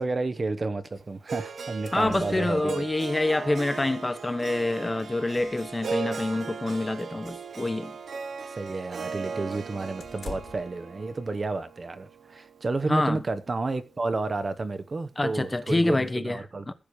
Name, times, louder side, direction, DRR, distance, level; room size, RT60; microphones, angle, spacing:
voice 1, 0.0-2.9 8.6-16.7, right 3 dB, 40° right, 1.1 m, -31 dB
sound 1, 0.8-1.0 1.3-1.4 1.6-2.9 4.1-4.2 4.6-4.7 5.2-6.2 6.6-6.9 7.3-7.9 10.0-10.8, left 4 dB, 60° left, 2.3 m, -46 dB
Harp, 1.3-13.4, right 5 dB, 70° right, 1.0 m, -38 dB
voice 2, 1.9-8.0 12.9-13.2 15.2-16.7, left 2 dB, 20° left, 1.0 m, -27 dB
15.5 x 7.1 x 4.8 m
wide cardioid pair, 110°, 0 cm